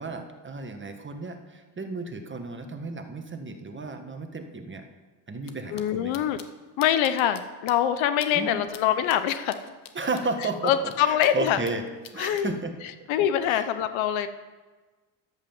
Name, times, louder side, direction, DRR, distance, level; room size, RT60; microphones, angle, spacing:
voice 1, 0.0-4.9 5.3-6.2 8.3-8.7 9.9-11.8 12.1-12.7 13.0-13.1 13.5-13.7, right 3 dB, 25° right, 6 dB, 1.5 m, -33 dB
sound 1, 5.4-5.5 5.8-5.9 6.1-6.5 6.8-7.4 7.7-7.8 8.2-8.3 8.7-8.8 9.1-11.7 12.0-12.4, left 8 dB, 40° left, 1.1 m, -44 dB
voice 2, 5.7-6.4 6.8-9.7 10.6-11.6 12.2-12.5 13.1-14.3, left 10 dB, 65° left, 11 dB, 1.0 m, -24 dB
11.5 x 7.5 x 7.2 m, 1.3 s
supercardioid pair, 80°, 49 cm